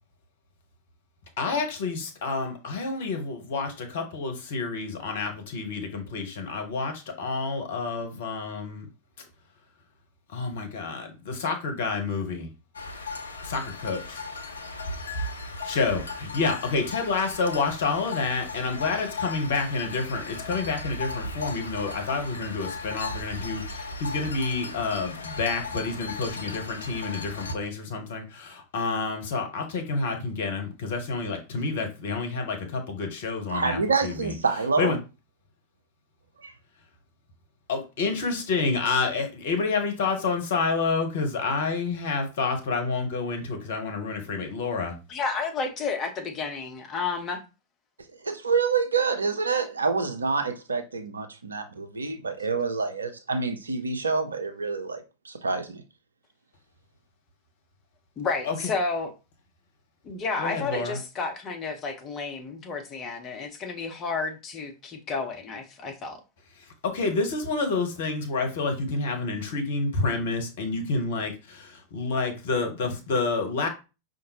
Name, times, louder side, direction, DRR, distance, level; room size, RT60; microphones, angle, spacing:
voice 1, 1.4-8.9 10.3-12.5 13.4-14.0 15.6-34.4 34.8-35.0 37.7-44.9 58.4-58.6 60.4-61.0 66.8-73.7, left 4 dB, 55° left, 1.0 m, -29 dB
sound 1, 12.7-27.5, left 3 dB, 70° left, 0.5 m, -36 dB
voice 2, 33.5-35.0 36.4-36.5 48.2-55.8, right 4 dB, 75° right, 0.6 m, -27 dB
voice 3, 45.1-47.4 58.2-59.1 60.0-66.2, left 4 dB, 30° left, 0.9 m, -31 dB
5.1 x 2.6 x 2.8 m
figure-of-eight pair, 90°, 0 cm